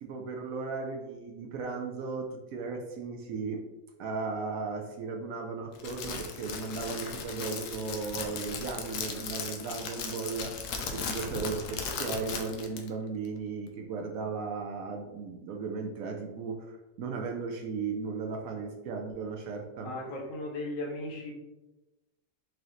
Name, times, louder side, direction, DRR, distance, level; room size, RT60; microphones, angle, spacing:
voice 1, 0.0-3.6 4.0-10.5 10.9-19.9, right 4 dB, 70° right, 3 dB, 0.8 m, -36 dB
Crackle, 5.7-12.9, left 5 dB, 75° left, 0.7 m, -37 dB
voice 2, 19.8-21.3, left 2 dB, 55° left, -1 dB, 1.1 m, -36 dB
4.7 x 2.6 x 3.0 m, 1.1 s
omnidirectional pair, 1.9 m